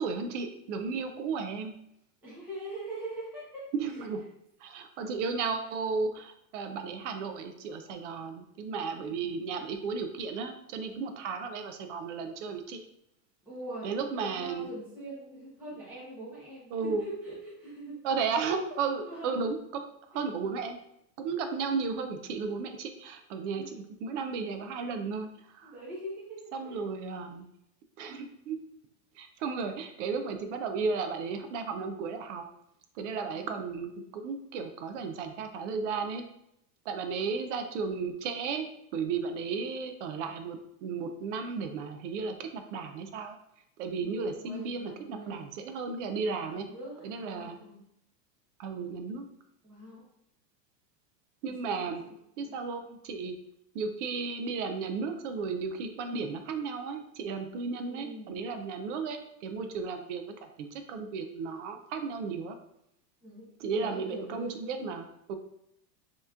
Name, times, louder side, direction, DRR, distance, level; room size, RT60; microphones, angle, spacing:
voice 1, 0.0-1.7 3.7-4.2 4.6-12.8 13.8-14.7 16.7-17.0 18.0-19.8 20.1-20.8 21.2-25.3 25.5-25.7 26.5-27.5 28.0-28.6 29.2-32.4 33.0-36.2 36.9-43.4 43.8-46.7 47.0-47.6 48.6-49.3 51.4-52.0 52.4-53.3 53.7-62.6 63.6-65.3, right 5 dB, 50° right, 6 dB, 0.5 m, -34 dB
voice 2, 2.2-3.7 3.9-4.1 9.2-9.4 11.3-11.4 13.4-18.0 19.0-19.4 23.5-23.8 25.6-26.8 33.2-33.5 43.9-45.5 46.1-46.3 46.6-47.8 49.6-50.0 51.6-52.1 52.5-52.6 57.8-58.4 63.2-64.9, right 1 dB, 5° right, -9 dB, 0.8 m, -43 dB
5.4 x 3.0 x 2.3 m, 0.78 s
supercardioid pair, 160°, 50 cm